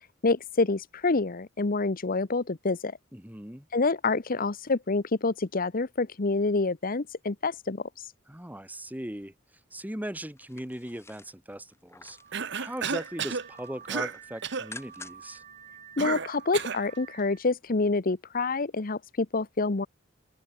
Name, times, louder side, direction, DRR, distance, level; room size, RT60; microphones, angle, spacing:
voice 1, 0.2-3.0 3.7-8.1 16.0-19.9, left 3 dB, 45° left, 0.9 m, -27 dB
voice 2, 3.1-3.7 8.3-9.3 9.7-12.2 12.6-15.4, right 1 dB, 10° right, 3.1 m, -38 dB
sound 1, 10.3-12.3 12.7-13.2 13.5-15.4 15.8-15.9, left 3 dB, 15° left, 2.3 m, -49 dB
Car / Alarm, 12.0-17.5, right 7 dB, 40° right, 2.1 m, -50 dB
Cough, 12.3-13.5 13.9-14.2 14.4-14.7 16.0-16.9, right 6 dB, 65° right, 1.3 m, -32 dB
open air
head